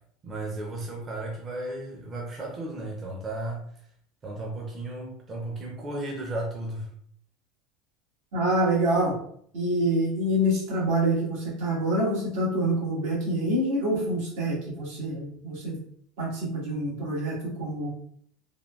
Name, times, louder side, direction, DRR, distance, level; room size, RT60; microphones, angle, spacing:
voice 1, 0.2-3.6 4.2-6.9, right 2 dB, 30° right, -1 dB, 0.6 m, -34 dB
voice 2, 8.3-9.1 9.5-15.8 16.2-17.9, right 1 dB, 85° right, -5 dB, 1.5 m, -26 dB
3.6 x 2.2 x 2.3 m, 0.64 s
supercardioid pair, 115°, 0 cm